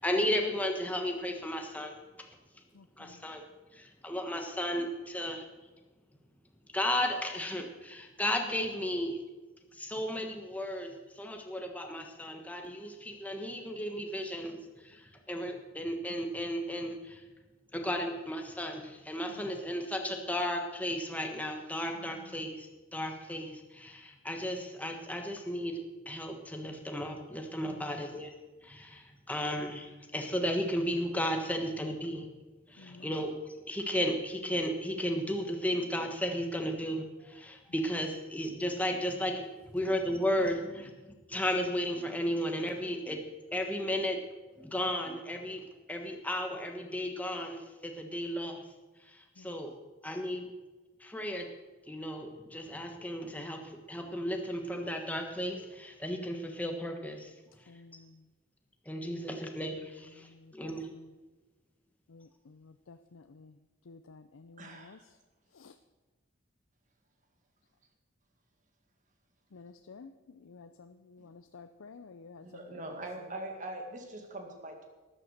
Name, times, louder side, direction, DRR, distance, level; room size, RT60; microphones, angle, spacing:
voice 1, 0.0-1.9 3.0-3.4 3.8-5.4 6.7-9.2 9.8-14.6 15.3-17.2 17.7-22.7 22.9-28.3 28.6-29.0 29.3-32.3 32.7-33.3 33.7-40.9 41.3-43.2 43.5-44.2 44.6-45.6 45.9-47.6 47.8-48.6 49.4-49.7 50.0-50.4 51.0-51.5 51.9-57.3 58.9-60.2 60.5-60.9, equal, 5° left, 3 dB, 1.3 m, -34 dB
voice 2, 2.7-3.2 19.3-19.5 22.0-22.2 27.7-28.0 32.8-33.2 49.4-49.5 57.7-58.1 59.0-59.6 60.2-61.1 62.1-63.5 63.9-65.0 65.6-65.7 69.5-70.1 70.4-72.4, left 4 dB, 85° left, 9 dB, 0.6 m, -53 dB
voice 3, 64.6-65.0 71.2-71.3 72.4-74.8, right 1 dB, 40° right, 3 dB, 2.0 m, -42 dB
13.0 x 11.0 x 6.6 m, 1.2 s
head